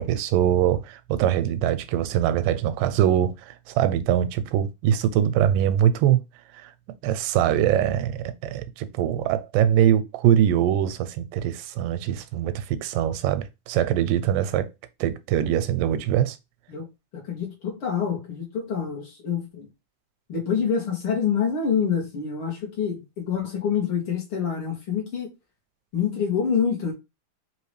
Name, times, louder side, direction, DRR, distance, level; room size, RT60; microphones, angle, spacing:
voice 1, 0.0-6.2 6.6-6.7 7.0-14.7 15.0-16.4, right 10 dB, 85° right, 2.2 m, -23 dB
voice 2, 17.1-19.7 20.3-25.3 25.9-26.9, left 7 dB, 50° left, 1.8 m, -26 dB
5.2 x 2.9 x 3.2 m
omnidirectional pair, 3.8 m